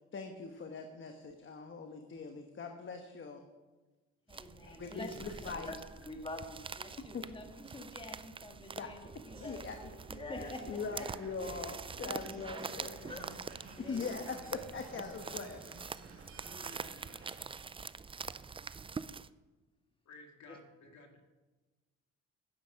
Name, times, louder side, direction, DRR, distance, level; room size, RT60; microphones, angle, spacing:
voice 1, 0.1-3.4 4.6-5.7 7.0-7.3 8.7-8.9 9.4-9.9 10.4-13.1 13.8-15.6, left 4 dB, 40° left, 5 dB, 1.2 m, -42 dB
voice 2, 4.3-10.7 11.0-13.4 13.8-14.4 16.5-17.1 20.5-20.6, left 2 dB, 15° left, 3 dB, 1.8 m, -48 dB
sound 1, 4.3-19.3, right 5 dB, 20° right, 0.3 m, -45 dB
sound 2, 9.3-17.4, right 3 dB, 45° right, 2.6 m, -55 dB
voice 3, 20.1-21.2, left 3 dB, 65° left, 3 dB, 2.2 m, -55 dB
10.5 x 9.5 x 6.4 m, 1.2 s
cardioid pair, 90°, 30 cm